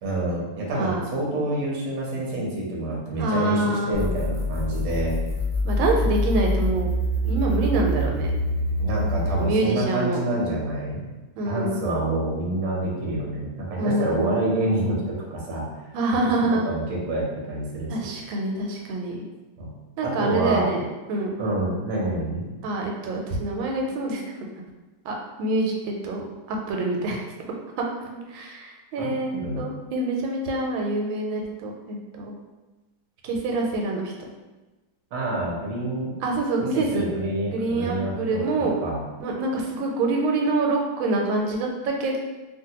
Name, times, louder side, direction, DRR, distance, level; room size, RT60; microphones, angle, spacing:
voice 1, 0.0-5.2 8.8-11.1 11.4-15.7 16.2-16.3 16.7-18.0 19.6-19.7 20.0-20.7 21.4-22.5 29.0-29.7 35.1-36.1 36.6-39.0, right 1 dB, 55° right, -4 dB, 1.0 m, -27 dB
voice 2, 0.7-1.0 3.2-4.1 5.6-6.9 7.2-8.3 9.4-10.2 11.4-11.8 13.8-14.4 15.9-16.7 17.9-19.2 20.0-21.3 22.6-24.2 25.0-27.2 28.3-32.3 33.2-34.1 36.2-37.0 37.5-38.7 39.2-42.2, right 2 dB, 85° right, 0 dB, 1.3 m, -26 dB
sound 1, 3.9-9.5, equal, 5° left, 1.0 m, -25 dB
2.9 x 2.5 x 2.8 m, 1.2 s
omnidirectional pair, 2.1 m